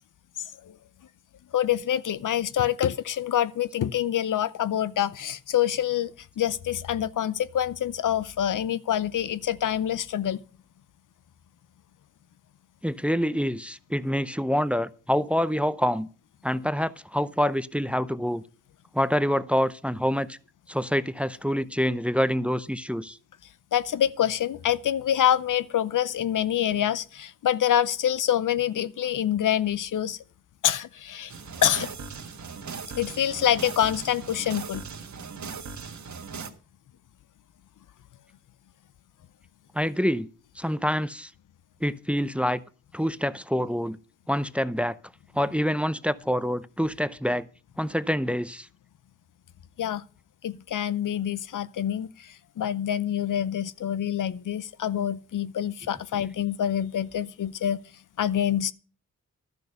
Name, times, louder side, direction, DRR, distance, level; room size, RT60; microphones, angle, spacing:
voice 1, 0.4-0.7 1.5-10.4 23.7-30.2 30.6-31.3 31.6-31.9 33.0-34.8 49.8-50.0 50.4-57.8 58.2-58.7, left 10 dB, 70° left, 0.7 m, -26 dB
voice 2, 12.8-16.1 16.4-18.4 18.9-20.4 20.7-23.2 39.7-40.3 40.6-41.3 41.8-42.6 42.9-44.0 44.3-45.0 45.3-47.5 47.8-48.7, equal, 5° right, 0.6 m, -26 dB
sound 1, 31.3-36.5, right 5 dB, 60° right, 1.4 m, -39 dB
12.0 x 6.6 x 6.6 m
cardioid pair, 50°, 32 cm